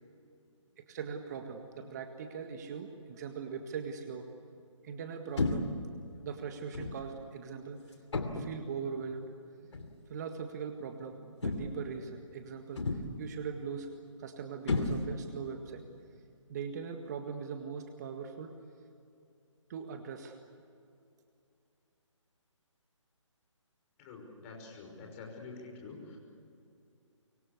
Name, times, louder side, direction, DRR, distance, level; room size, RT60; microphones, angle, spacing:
voice 1, 0.9-4.3 4.8-5.7 6.2-7.8 8.3-9.3 10.1-13.9 14.2-15.9 16.5-18.6 19.7-20.4, right 6 dB, 35° right, 5 dB, 1.8 m, -40 dB
sound 1, 5.4-5.8 6.7-7.1 8.1-8.6 9.7-9.9 11.4-11.9 12.8-13.3 14.7-15.4, left 3 dB, 60° left, 2.9 m, -33 dB
voice 2, 24.0-26.2, left 4 dB, 25° left, 1 dB, 6.0 m, -48 dB
25.5 x 23.5 x 8.4 m, 2.6 s
figure-of-eight pair, 145°, 17 cm